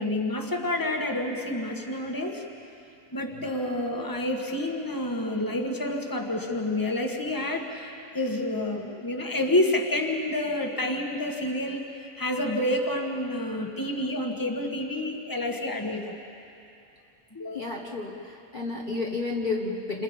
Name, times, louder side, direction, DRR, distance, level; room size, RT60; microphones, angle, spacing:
voice 1, 0.0-2.4 3.1-16.2 17.3-17.7, left 1 dB, 15° left, 2 dB, 1.9 m, -29 dB
voice 2, 17.5-20.0, left 3 dB, 35° left, -2 dB, 1.6 m, -31 dB
30.0 x 27.5 x 5.4 m, 2.7 s
omnidirectional pair, 1.6 m